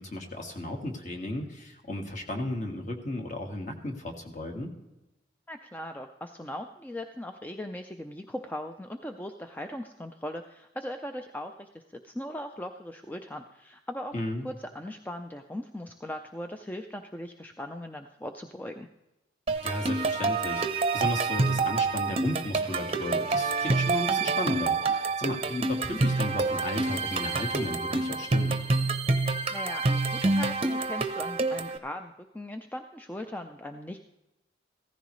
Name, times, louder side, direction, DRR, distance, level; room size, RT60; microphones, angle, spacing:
voice 1, 0.0-4.7 14.1-14.4 19.6-28.6, left 1 dB, 40° left, 3 dB, 1.7 m, -34 dB
voice 2, 5.5-14.1 14.4-18.9 29.5-34.0, left 1 dB, 10° left, 5 dB, 0.4 m, -39 dB
sound 1, 19.5-31.8, right 3 dB, 30° right, 0.7 m, -27 dB
15.5 x 14.0 x 3.1 m, 0.96 s
head